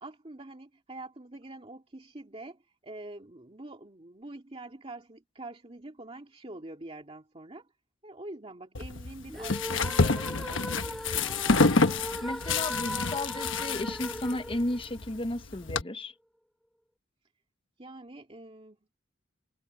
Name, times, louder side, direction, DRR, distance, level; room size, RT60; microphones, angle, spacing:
voice 1, 0.0-7.7 8.0-11.4 12.8-13.2 17.8-18.8, right 2 dB, 30° right, 2.2 m, -45 dB
sound 1, 8.7-15.8, left 3 dB, 75° left, 1.2 m, -28 dB
sound 2, 9.3-15.4, equal, ahead, 1.4 m, -39 dB
voice 2, 12.2-16.1, left 1 dB, 30° left, 0.9 m, -34 dB
head